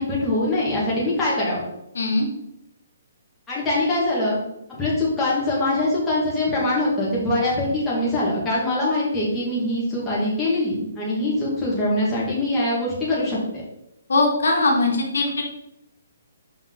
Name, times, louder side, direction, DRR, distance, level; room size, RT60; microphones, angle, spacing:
voice 1, 0.0-1.6 3.5-4.4 4.7-13.6, left 1 dB, 10° left, -8 dB, 2.1 m, -23 dB
voice 2, 1.9-2.3 14.1-15.4, left 2 dB, 80° left, 1 dB, 1.5 m, -20 dB
5.8 x 5.0 x 4.0 m, 0.82 s
hypercardioid pair, 160°, 0 cm